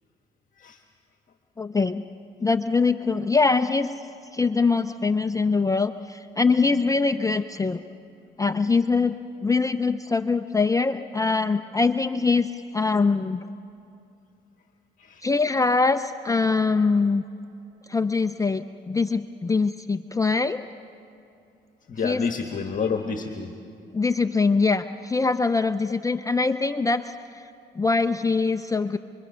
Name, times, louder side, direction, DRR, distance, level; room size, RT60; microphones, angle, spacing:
voice 1, 1.6-2.0 2.4-4.1 4.3-7.8 8.4-9.2 9.4-13.5 15.2-17.2 17.9-20.6 22.0-22.2 23.9-27.5 27.7-29.0, left 4 dB, 15° left, 9 dB, 0.5 m, -23 dB
voice 2, 21.9-23.6, left 5 dB, 40° left, 4 dB, 1.4 m, -29 dB
27.0 x 23.0 x 5.6 m, 2.7 s
cardioid pair, 90°, 20 cm